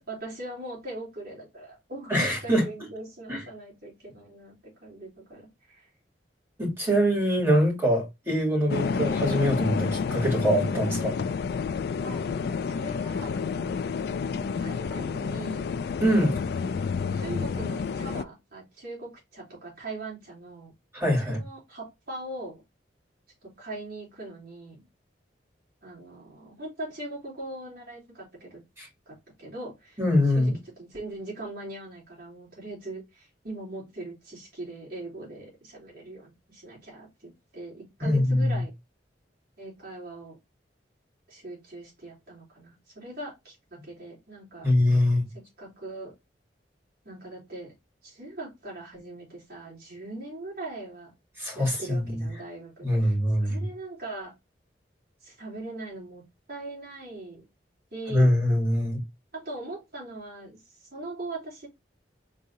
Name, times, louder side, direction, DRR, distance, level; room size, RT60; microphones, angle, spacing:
voice 1, 0.1-5.9 12.0-12.3 12.7-14.0 14.6-15.7 16.2-16.4 17.1-20.7 21.2-22.6 23.6-24.8 25.8-28.6 29.1-30.0 30.3-30.5 30.8-38.7 39.6-40.4 41.3-44.7 45.3-46.1 47.1-47.7 48.0-51.1 51.5-53.2 53.4-54.3 55.2-56.2 56.5-57.4 57.9-58.4 59.3-61.7, right 2 dB, 60° right, 3.3 m, -40 dB
voice 2, 2.1-2.6 3.3-3.4 6.6-11.2 16.0-16.3 20.9-21.4 28.8-28.9 30.0-30.5 38.0-38.6 44.6-45.2 51.4-52.3 52.8-53.7 58.1-59.0, equal, 15° right, 2.7 m, -23 dB
sound 1, 8.7-18.2, left 5 dB, 60° left, 0.3 m, -29 dB
5.2 x 3.7 x 2.7 m
head